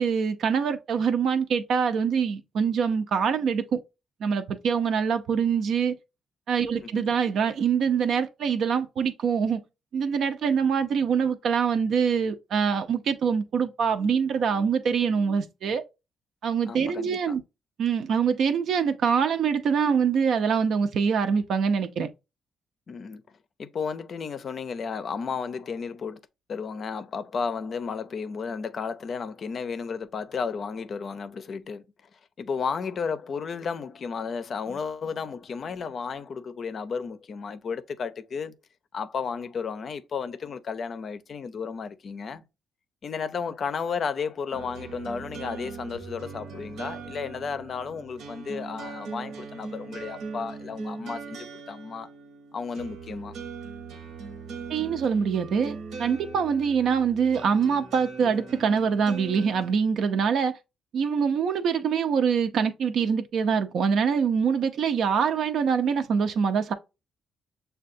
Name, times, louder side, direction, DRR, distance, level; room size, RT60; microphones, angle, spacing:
voice 1, 0.0-3.8 4.2-6.0 6.5-9.6 9.9-15.8 16.4-17.4 17.8-22.1 54.7-60.5 60.9-66.7, right 6 dB, 70° right, 0.5 m, -24 dB
voice 2, 16.7-17.4 22.9-23.2 23.6-26.2 26.5-31.8 32.1-38.5 38.9-42.4 43.0-52.1 52.5-53.4, left 5 dB, 50° left, 0.5 m, -33 dB
sound 1, 44.5-59.7, right 4 dB, 85° right, 1.0 m, -40 dB
6.4 x 2.3 x 2.6 m
cardioid pair, 90°, 0 cm